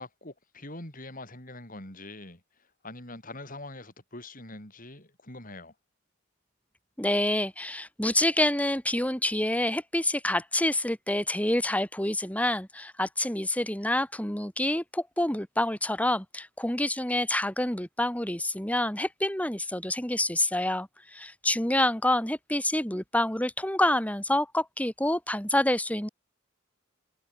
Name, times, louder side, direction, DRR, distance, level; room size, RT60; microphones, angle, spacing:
voice 1, 0.0-2.4 2.8-5.7, left 2 dB, 40° left, 7.5 m, -43 dB
voice 2, 7.0-26.1, left 1 dB, 5° left, 2.2 m, -27 dB
head